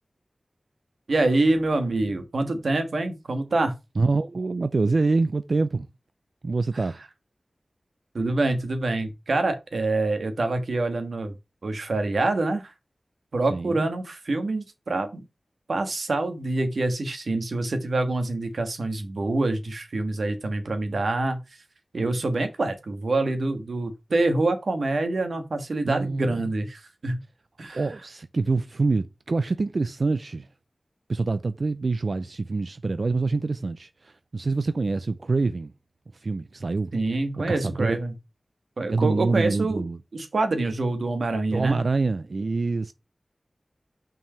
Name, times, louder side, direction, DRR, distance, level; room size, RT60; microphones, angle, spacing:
voice 1, 1.1-3.8 8.1-11.3 11.6-12.7 13.3-15.2 15.7-21.4 21.9-27.2 27.6-27.8 36.9-38.1 38.8-39.8 40.1-41.8, right 2 dB, 85° right, 1.5 m, -26 dB
voice 2, 4.0-5.9 6.4-7.0 13.5-13.9 25.8-26.4 27.7-30.5 31.1-35.7 36.1-36.9 37.5-38.0 38.9-40.0 41.5-42.9, right 3 dB, 65° right, 0.4 m, -26 dB
5.9 x 4.7 x 5.6 m
wide cardioid pair, 80°, 0 cm